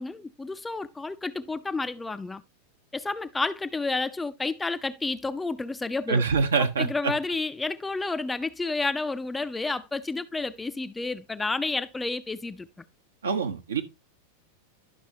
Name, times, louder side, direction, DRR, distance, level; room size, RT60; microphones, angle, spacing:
voice 1, 0.0-2.4 2.9-6.2 6.6-12.7, left 3 dB, 10° left, 0.5 m, -30 dB
voice 2, 6.1-7.1 13.2-13.8, right 5 dB, 70° right, 1.1 m, -25 dB
11.5 x 6.1 x 2.7 m
figure-of-eight pair, 90°, 0 cm